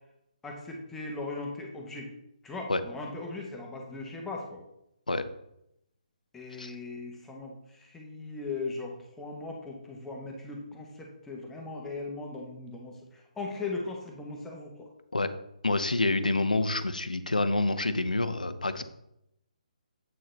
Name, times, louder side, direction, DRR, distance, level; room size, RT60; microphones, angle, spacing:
voice 1, 0.4-2.1 2.4-4.6 6.3-14.9, left 3 dB, 10° left, 0 dB, 0.8 m, -38 dB
voice 2, 15.6-18.8, left 2 dB, 90° left, 12 dB, 0.5 m, -27 dB
7.7 x 3.9 x 3.2 m, 0.81 s
figure-of-eight pair, 145°, 4 cm